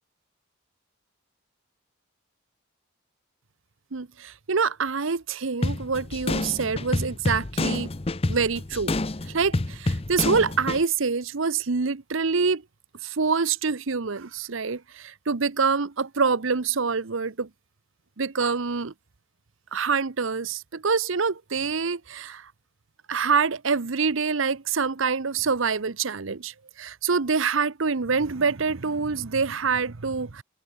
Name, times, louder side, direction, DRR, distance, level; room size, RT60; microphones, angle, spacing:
voice 1, 3.9-7.9 8.3-8.9 9.2-12.6 13.0-17.5 18.2-18.9 19.7-22.5 23.1-30.4, right 5 dB, 70° right, 0.8 m, -26 dB
sound 1, 5.6-10.8, left 2 dB, 30° left, 0.7 m, -28 dB
head